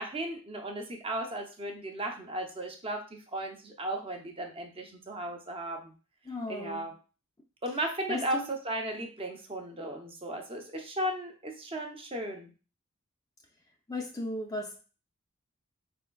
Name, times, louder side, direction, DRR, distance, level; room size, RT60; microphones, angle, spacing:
voice 1, 0.0-3.0 3.3-5.9 6.5-6.9 7.6-8.4 8.7-12.5, right 1 dB, 25° right, 3 dB, 0.6 m, -35 dB
voice 2, 6.2-7.0 8.1-8.5 13.9-14.8, left 2 dB, 15° left, 1 dB, 0.4 m, -36 dB
4.2 x 3.4 x 2.3 m, 0.34 s
head